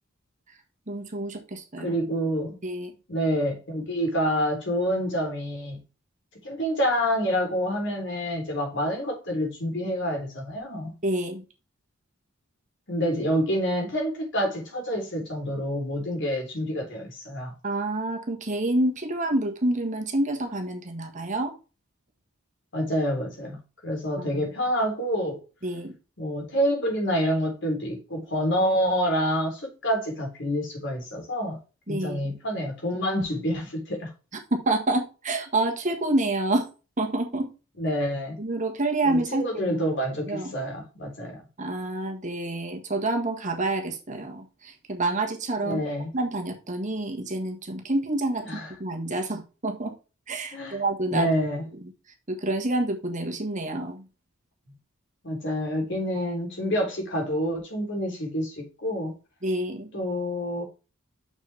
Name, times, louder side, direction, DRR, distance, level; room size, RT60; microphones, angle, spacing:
voice 1, 0.9-2.0 2.6-2.9 11.0-11.4 17.6-21.5 24.2-24.5 25.6-25.9 31.9-32.4 34.5-36.7 37.0-37.5 38.4-39.8 40.3-40.5 41.6-45.8 46.1-48.4 48.8-49.9 50.3-51.3 51.6-51.7 52.3-54.0 59.4-59.9, right 2 dB, 35° right, 1.5 m, -28 dB
voice 2, 1.8-2.5 3.1-5.8 6.4-10.9 12.9-17.5 22.7-23.6 23.8-25.4 26.2-31.6 31.9-34.1 37.8-38.4 39.0-41.4 45.6-46.1 48.5-48.7 50.5-50.8 51.1-51.6 55.2-59.1 59.9-60.6, equal, 60° left, 3.4 m, -27 dB
6.6 x 6.2 x 3.4 m
head